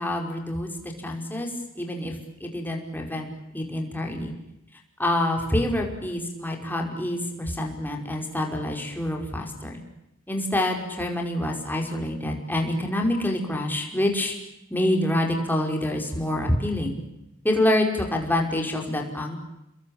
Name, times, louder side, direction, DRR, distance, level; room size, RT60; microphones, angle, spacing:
voice 1, 0.0-3.3 3.5-4.3 5.0-9.8 10.3-14.4 14.7-17.0 17.4-19.4, left 1 dB, 10° left, 1 dB, 5.4 m, -26 dB
30.0 x 22.0 x 8.9 m, 0.88 s
head